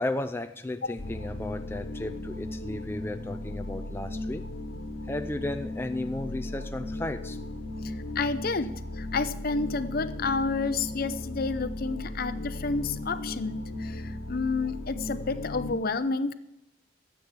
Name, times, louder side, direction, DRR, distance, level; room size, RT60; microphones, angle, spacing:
voice 1, 0.0-4.4 5.1-7.4, left 1 dB, 10° left, 8 dB, 0.4 m, -34 dB
sound 1, 1.0-15.8, left 1 dB, 85° left, 1.3 m, -36 dB
voice 2, 8.2-14.0 14.3-16.3, left 4 dB, 50° left, 13 dB, 0.7 m, -30 dB
13.0 x 8.3 x 7.3 m, 0.88 s
head